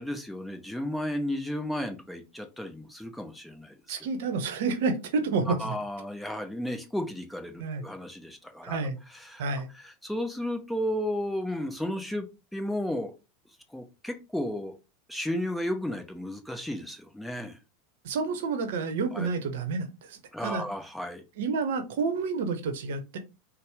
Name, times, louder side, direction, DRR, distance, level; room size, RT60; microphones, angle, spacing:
voice 1, 0.0-4.0 5.5-8.8 9.1-9.4 9.7-13.1 13.7-14.8 15.1-17.6 19.1-19.3 20.3-21.2, left 1 dB, 5° left, 0.7 m, -33 dB
voice 2, 3.9-5.7 7.6-7.8 8.6-9.0 9.4-9.7 18.0-20.6 21.4-23.2, right 4 dB, 65° right, 0.7 m, -29 dB
4.2 x 2.0 x 3.4 m
hypercardioid pair, 90°, 0 cm